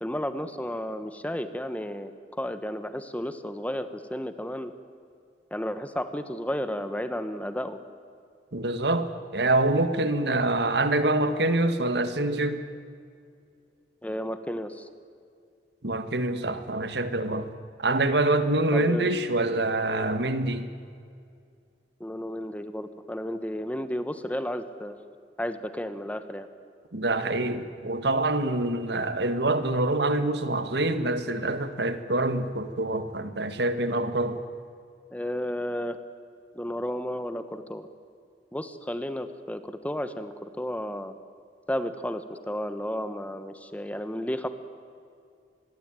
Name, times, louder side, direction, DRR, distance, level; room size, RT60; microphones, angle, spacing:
voice 1, 0.0-4.7 5.5-7.8 14.0-14.9 18.7-19.1 22.0-25.0 25.4-26.5 35.1-36.0 36.5-37.9 38.5-41.1 41.7-44.5, equal, 10° left, 11 dB, 1.3 m, -33 dB
voice 2, 8.5-12.6 15.8-17.5 17.8-20.6 26.9-34.4, right 2 dB, 65° right, 11 dB, 1.8 m, -25 dB
25.5 x 22.0 x 9.1 m, 2.3 s
head